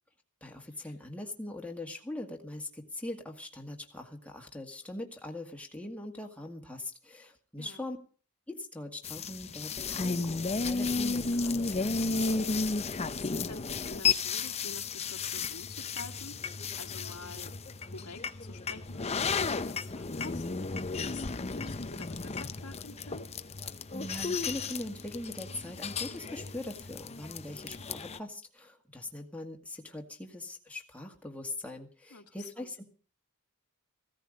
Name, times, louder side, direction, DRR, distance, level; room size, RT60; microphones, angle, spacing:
voice 1, 0.4-8.0 8.5-12.5 23.9-32.8, left 1 dB, 5° left, 1 dB, 2.0 m, -41 dB
sound 1, 9.0-28.2, left 4 dB, 30° left, 0.7 m, -33 dB
voice 2, 13.2-17.5 17.8-20.5 20.9-23.3 32.1-32.7, left 3 dB, 90° left, 4 dB, 1.9 m, -48 dB
16.0 x 14.0 x 5.1 m, 0.39 s
head